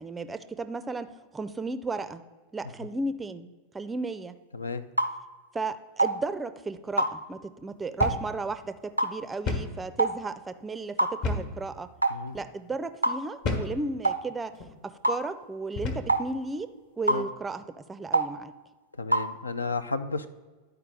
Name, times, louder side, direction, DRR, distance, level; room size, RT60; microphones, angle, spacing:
voice 1, 0.0-2.2 2.5-4.4 5.5-11.9 12.3-14.5 14.8-16.7 17.0-17.6 17.9-18.5, right 3 dB, 15° right, 12 dB, 0.4 m, -34 dB
sound 1, 5.0-5.2 6.0-6.2 7.0-7.2 8.0-8.2 9.0-9.2 10.0-10.2 11.0-11.2 12.0-12.2 13.0-13.2 14.0-14.2 15.0-15.2 16.1-16.3 17.1-17.3 18.1-18.3 19.1-19.3, right 2 dB, 85° right, 0.4 m, -24 dB
sound 2, 8.0-8.3 8.6-8.7 9.5-9.8 11.2-11.6 12.3-12.5 13.4-13.8 14.5-14.7 15.8-16.1, left 3 dB, 45° left, 1.1 m, -31 dB
voice 2, 19.0-20.3, left 3 dB, 75° left, 12 dB, 0.4 m, -32 dB
11.0 x 4.6 x 3.6 m, 1.3 s
figure-of-eight pair, 90°, 0 cm